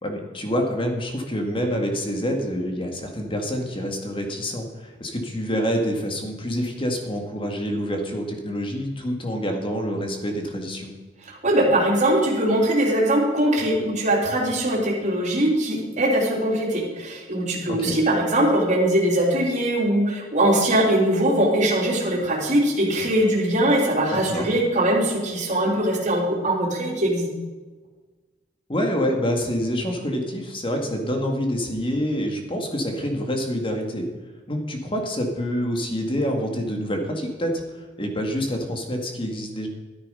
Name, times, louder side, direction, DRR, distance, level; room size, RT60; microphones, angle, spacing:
voice 1, 0.0-10.9 17.7-18.0 24.1-24.5 28.7-34.1 34.5-39.7, equal, 30° left, 3 dB, 2.1 m, -27 dB
voice 2, 11.2-27.3, right 1 dB, 40° right, -2 dB, 3.2 m, -21 dB
13.0 x 9.5 x 5.6 m, 1.3 s
head